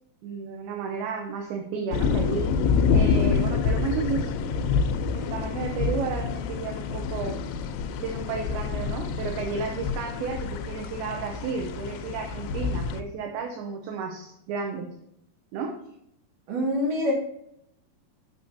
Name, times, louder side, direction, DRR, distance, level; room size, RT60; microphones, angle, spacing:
voice 1, 0.2-2.4 2.9-4.3 4.9-7.3 8.0-14.9 15.5-15.7, right 5 dB, 75° right, 2 dB, 2.5 m, -32 dB
sound 1, 1.9-13.0, left 5 dB, 90° left, 2.9 m, -27 dB
voice 2, 16.5-17.1, left 1 dB, 55° right, -2 dB, 3.0 m, -25 dB
9.0 x 6.2 x 2.7 m, 0.75 s
omnidirectional pair, 5.1 m